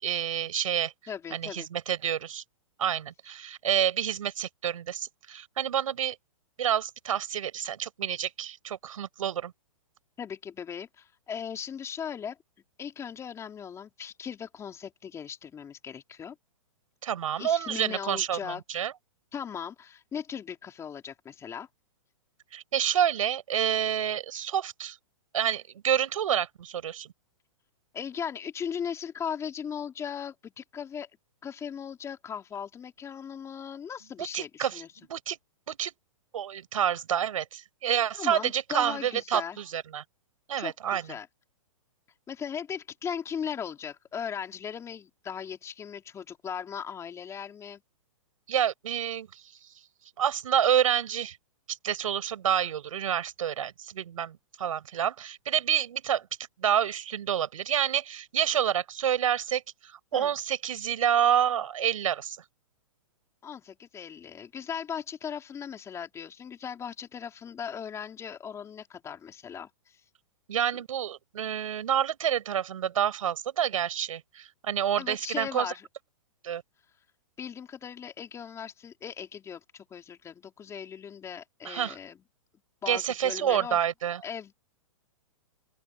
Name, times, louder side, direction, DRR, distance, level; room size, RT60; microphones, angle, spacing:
voice 1, 0.0-0.9 1.3-2.4 2.8-6.2 6.6-9.5 17.0-18.9 22.5-25.0 25.3-27.1 34.2-34.8 35.1-35.4 35.7-35.9 36.3-40.0 40.5-41.1 48.5-49.4 50.2-51.4 51.7-56.3 56.6-62.4 70.5-75.7 76.4-76.6 81.6-82.0 82.9-84.2, right 9 dB, 75° right, 5.3 m, -28 dB
voice 2, 1.1-1.7 10.2-12.4 12.8-16.3 17.3-18.6 19.3-21.7 27.9-31.1 31.4-34.9 38.2-39.6 40.6-41.3 42.3-47.8 60.1-60.3 63.4-70.0 75.0-75.9 77.4-82.2 82.8-83.8 84.2-84.5, left 7 dB, 15° left, 3.1 m, -38 dB
open air
hypercardioid pair, 140°, 17 cm